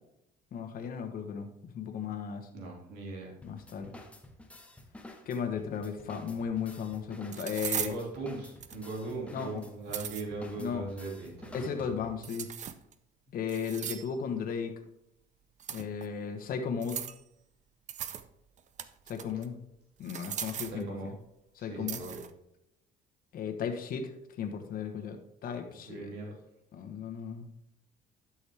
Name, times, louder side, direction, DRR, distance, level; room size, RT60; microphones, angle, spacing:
voice 1, 0.5-2.5 3.4-3.9 5.3-7.9 9.3-9.6 10.6-10.9 11.5-12.5 13.3-14.7 15.7-17.0 19.1-19.6 20.0-21.1 21.5-22.0 23.3-24.1 24.4-25.2 25.4-26.1 26.7-27.5, left 6 dB, 60° left, 6 dB, 1.2 m, -35 dB
voice 2, 2.5-3.3 7.8-11.8 20.6-21.1 21.6-22.2 25.9-26.3, right 3 dB, 85° right, -1 dB, 2.7 m, -39 dB
sound 1, 3.4-12.3, left 1 dB, 5° left, 1.1 m, -51 dB
sound 2, 6.4-6.5 7.3-8.0 8.6-9.0 9.7-10.2 12.2-12.9 13.5-14.2 15.6-16.1 16.8-17.2 17.9-18.3 18.6-19.5 20.0-20.8 21.9-22.3, right 9 dB, 45° right, 0.6 m, -38 dB
11.5 x 6.3 x 3.4 m, 0.82 s
cardioid pair, 110°, 17 cm